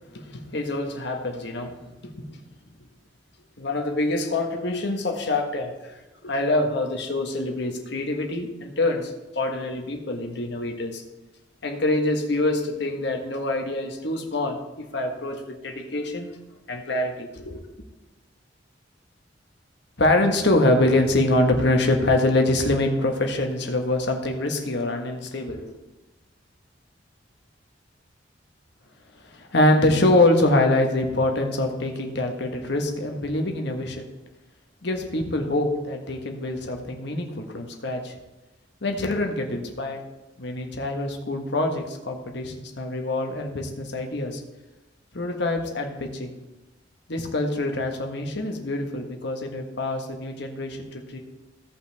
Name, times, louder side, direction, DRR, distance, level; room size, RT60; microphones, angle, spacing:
voice 1, 0.1-1.8 2.0-2.4 3.6-11.0 11.6-16.4 16.7-17.6 20.0-25.8 29.2-34.1 34.8-38.1 38.8-40.0 40.4-44.4 45.1-46.3 47.1-51.2, left 2 dB, 65° left, 3 dB, 1.4 m, -25 dB
16.0 x 5.6 x 3.5 m, 1.1 s
head